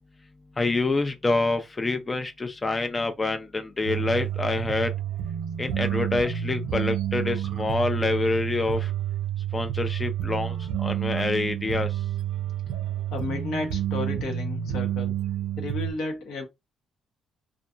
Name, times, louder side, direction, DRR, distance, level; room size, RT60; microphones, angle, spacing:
voice 1, 0.6-4.9 5.6-8.9 9.5-12.0, left 3 dB, 30° left, 0.5 m, -27 dB
sound 1, 3.8-15.9, right 11 dB, 85° right, 0.4 m, -29 dB
voice 2, 13.1-15.2 15.6-16.4, left 3 dB, 75° left, 1.0 m, -32 dB
2.6 x 2.3 x 2.5 m
supercardioid pair, 65°, 0 cm